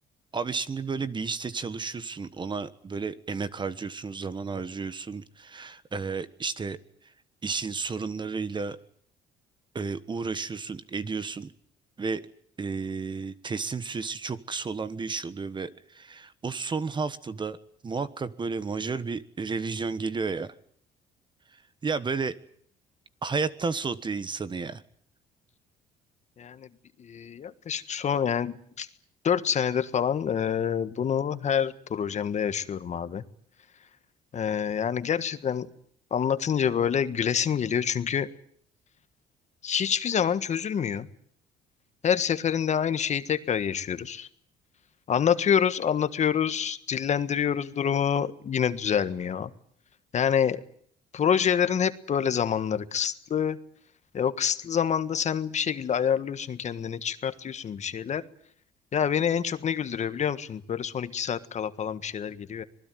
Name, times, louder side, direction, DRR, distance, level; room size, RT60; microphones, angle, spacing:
voice 1, 0.3-6.8 7.4-8.8 9.7-11.5 12.0-12.2 12.6-15.7 15.9-17.6 17.8-20.5 21.8-22.4 23.2-24.8, right 4 dB, 25° right, 14 dB, 1.4 m, -32 dB
voice 2, 26.4-26.7 27.0-28.9 29.2-33.2 34.3-35.7 36.1-38.3 39.6-41.1 42.0-44.3 45.1-49.5 50.1-50.6 51.1-53.6 54.1-58.2 58.9-62.6, left 8 dB, 45° left, 12 dB, 1.6 m, -27 dB
26.0 x 20.0 x 9.3 m, 0.62 s
cardioid pair, 110°, 17 cm